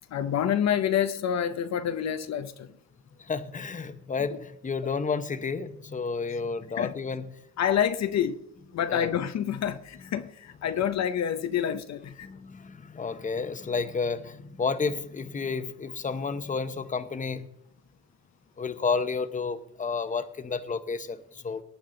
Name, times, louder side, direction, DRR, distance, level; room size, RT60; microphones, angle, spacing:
voice 1, 0.1-2.7 6.3-6.4 6.8-6.9 7.6-8.4 8.7-12.3, left 9 dB, 60° left, 0.7 m, -27 dB
voice 2, 3.3-7.3 8.9-9.1 12.2-17.5 18.6-21.6, left 5 dB, 25° left, 1.0 m, -31 dB
18.0 x 9.2 x 3.9 m
cardioid pair, 90°, 30 cm